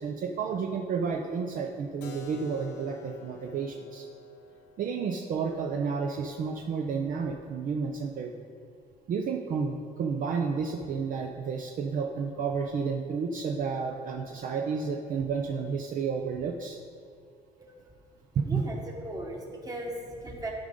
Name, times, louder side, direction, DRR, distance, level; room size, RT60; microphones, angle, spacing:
voice 1, 0.0-4.1 4.8-8.3 9.1-16.8 18.4-18.6, right 5 dB, 55° right, 2 dB, 0.6 m, -31 dB
Keyboard (musical), 2.0-7.6, left 5 dB, 80° left, 0.9 m, -49 dB
voice 2, 18.5-20.5, right 1 dB, 20° right, 0 dB, 1.4 m, -37 dB
12.0 x 5.2 x 3.7 m, 2.2 s
cardioid pair, 110°, 17 cm